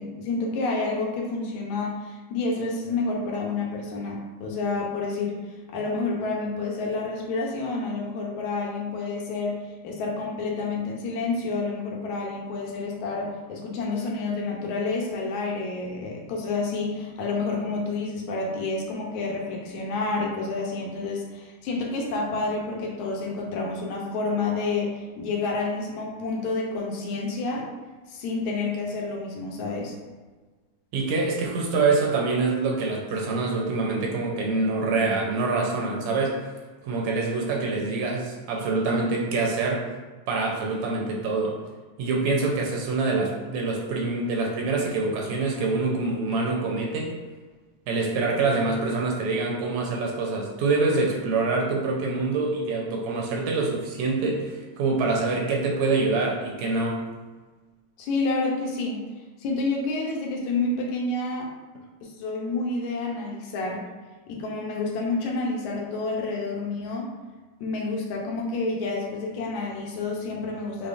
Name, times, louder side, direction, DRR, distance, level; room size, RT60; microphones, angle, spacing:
voice 1, 0.0-5.4 5.7-27.7 28.1-30.0 58.0-59.0 59.4-61.5 62.0-63.8 64.3-67.1 67.6-70.9, left 3 dB, 80° left, -1 dB, 2.1 m, -29 dB
voice 2, 30.9-36.3 36.8-39.8 40.3-41.5 42.0-47.1 47.9-57.0, right 3 dB, 75° right, -1 dB, 1.8 m, -25 dB
5.5 x 3.5 x 2.5 m, 1.3 s
omnidirectional pair, 3.4 m